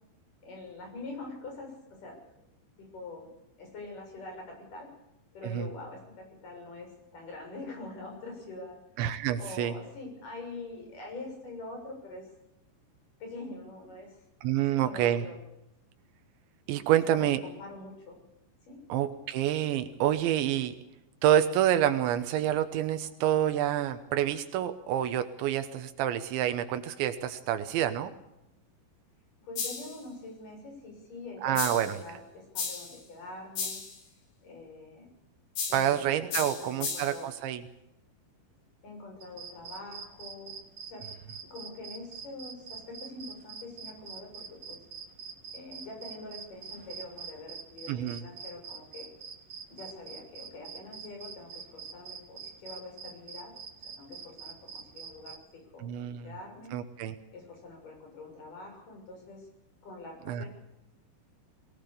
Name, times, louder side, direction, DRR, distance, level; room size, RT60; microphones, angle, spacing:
voice 1, 0.4-2.4 2.8-3.3 3.6-4.9 5.3-8.8 9.4-12.3 13.2-14.2 14.5-15.4 16.9-18.2 18.7-18.8 29.4-33.8 34.4-35.1 35.7-37.3 38.8-40.6 40.9-41.0 41.5-44.8 45.5-49.1 49.7-53.5 53.8-56.7 57.3-59.5 59.8-60.5, left 2 dB, 45° left, 2 dB, 8.3 m, -45 dB
voice 2, 9.0-9.7 14.4-15.3 16.7-17.4 18.9-20.7 21.2-28.1 31.4-32.0 35.7-37.6 47.9-48.2 55.8-56.3 56.7-57.2 60.3-60.5, right 11 dB, 85° right, 8 dB, 3.4 m, -28 dB
sound 1, 29.6-30.0 31.6-32.0 32.6-33.0 33.6-34.0 35.6-36.0 36.3-37.2, left 5 dB, 90° left, 6.7 m, -34 dB
sound 2, 39.2-55.4, right 6 dB, 50° right, 2.3 m, -44 dB
23.0 x 19.0 x 6.9 m, 0.87 s
omnidirectional pair, 5.1 m